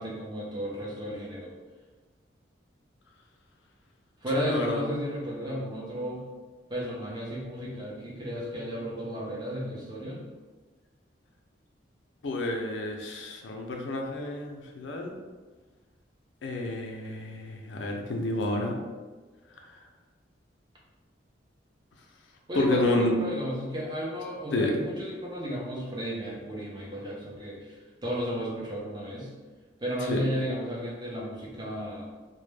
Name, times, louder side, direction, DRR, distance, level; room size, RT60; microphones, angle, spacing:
voice 1, 0.0-1.5 4.2-6.3 6.7-10.3 22.5-29.3 29.8-32.0, equal, 25° right, -4 dB, 0.5 m, -33 dB
voice 2, 4.3-4.8 12.2-15.1 16.4-18.7 22.5-23.1 24.5-24.7 30.1-30.2, left 2 dB, 80° left, 2 dB, 0.4 m, -30 dB
2.1 x 2.1 x 3.1 m, 1.3 s
head